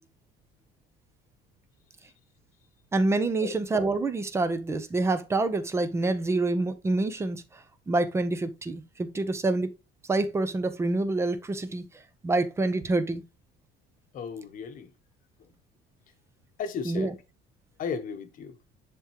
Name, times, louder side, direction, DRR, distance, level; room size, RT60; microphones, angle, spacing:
voice 1, 2.9-9.7 10.1-11.9 12.2-13.2 16.9-17.1, right 2 dB, 10° right, 0.6 m, -27 dB
voice 2, 14.1-14.9 15.4-15.5 16.6-17.1 17.8-18.6, left 6 dB, 40° left, 1.0 m, -35 dB
10.5 x 3.7 x 2.9 m
cardioid pair, 175°, 21 cm